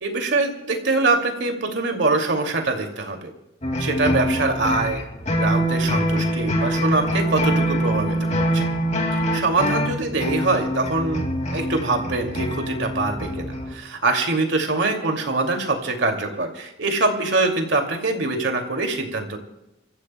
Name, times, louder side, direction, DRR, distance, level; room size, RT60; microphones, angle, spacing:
voice 1, 0.0-3.3 3.8-5.0 5.3-8.7 9.1-19.4, right 3 dB, 70° right, 4 dB, 2.5 m, -24 dB
sound 1, 3.6-13.7, equal, 40° left, 2.3 m, -24 dB
29.5 x 15.0 x 2.2 m, 0.92 s
head